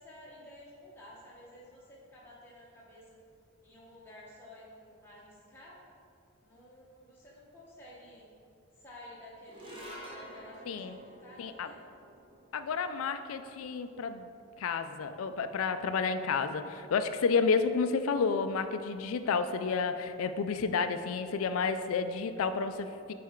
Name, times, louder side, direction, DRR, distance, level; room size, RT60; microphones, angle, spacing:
voice 1, 0.0-3.2 3.6-5.8 6.4-8.3 8.8-11.8, left 1 dB, 10° left, -7 dB, 0.9 m, -52 dB
sound 1, 9.4-15.9, equal, 25° right, 0.9 m, -51 dB
voice 2, 10.7-11.0 11.4-11.7 12.5-14.3 14.6-23.1, left 5 dB, 75° left, 10 dB, 0.4 m, -31 dB
7.4 x 4.2 x 3.7 m, 2.5 s
head